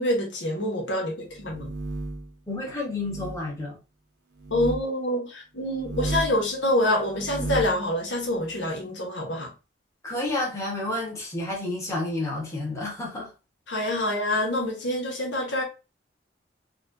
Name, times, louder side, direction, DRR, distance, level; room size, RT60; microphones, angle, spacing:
voice 1, 0.0-1.7 4.5-9.5 13.7-15.6, left 1 dB, 85° left, 1.2 m, -26 dB
sound 1, 1.3-2.3 3.0-3.4 4.4-4.8 5.7-6.4 7.1-7.8, right 2 dB, 80° right, 0.7 m, -33 dB
voice 2, 2.5-3.8 10.0-13.3 14.0-14.1, left 2 dB, 15° left, 1.3 m, -30 dB
4.2 x 2.4 x 2.5 m
head